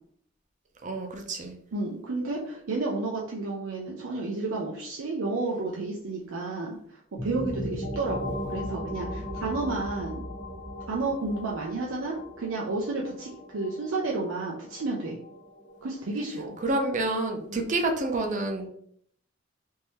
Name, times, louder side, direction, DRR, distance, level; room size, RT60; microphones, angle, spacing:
voice 1, 0.8-1.5 16.6-18.7, right 2 dB, 40° right, 3 dB, 0.6 m, -28 dB
voice 2, 1.7-10.2 10.9-15.2 15.8-16.6 17.5-17.6, right 3 dB, 90° right, -2 dB, 0.6 m, -31 dB
sound 1, 7.2-16.7, left 1 dB, 60° left, 1.1 m, -38 dB
3.6 x 2.7 x 3.1 m, 0.65 s
head